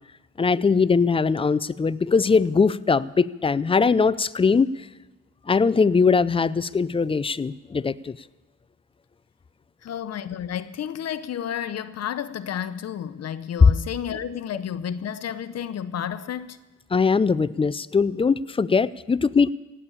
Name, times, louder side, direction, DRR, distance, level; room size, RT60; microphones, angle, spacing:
voice 1, 0.4-4.9 5.5-8.2 13.6-13.7 16.9-19.5, left 5 dB, 20° left, 0.4 m, -20 dB
voice 2, 9.8-16.6, left 9 dB, 55° left, 0.8 m, -31 dB
17.0 x 8.5 x 8.8 m
cardioid pair, 90°, 30 cm